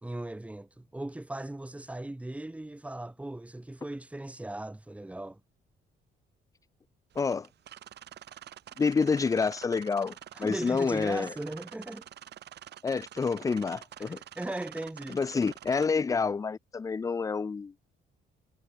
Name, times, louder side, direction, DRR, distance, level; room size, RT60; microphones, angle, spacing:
voice 1, 0.0-5.4 10.3-12.1 14.0-15.2, right 1 dB, 5° right, 2.0 m, -38 dB
sound 1, 7.1-15.9, right 11 dB, 65° right, 3.1 m, -48 dB
voice 2, 7.2-7.5 8.8-11.3 12.8-14.2 15.1-17.7, left 5 dB, 20° left, 0.4 m, -28 dB
cardioid pair, 140°, 19 cm